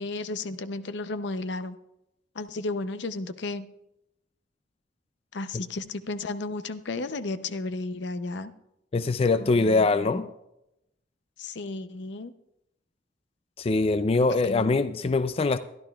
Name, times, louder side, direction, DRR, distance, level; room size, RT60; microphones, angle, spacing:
voice 1, 0.0-1.8 2.3-3.7 5.3-8.5 9.3-10.3 11.4-12.3 14.4-14.8, left 2 dB, 75° left, 0.6 m, -33 dB
voice 2, 8.9-10.3 13.6-15.6, left 3 dB, 35° left, 0.4 m, -23 dB
22.5 x 11.5 x 2.3 m
head